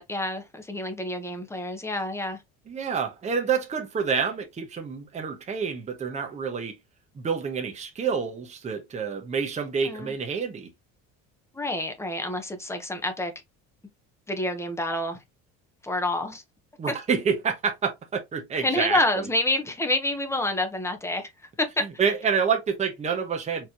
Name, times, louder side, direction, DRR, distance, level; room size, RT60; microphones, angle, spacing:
voice 1, 0.0-2.4 9.8-10.1 11.5-13.3 14.3-15.2 15.8-16.4 16.9-17.0 18.6-21.3 21.6-21.8, left 1 dB, 10° left, 0.9 m, -28 dB
voice 2, 2.7-6.7 7.1-10.7 16.8-19.0 22.0-23.7, right 6 dB, 25° right, 1.0 m, -28 dB
4.5 x 3.2 x 2.9 m
cardioid pair, 135°, 29 cm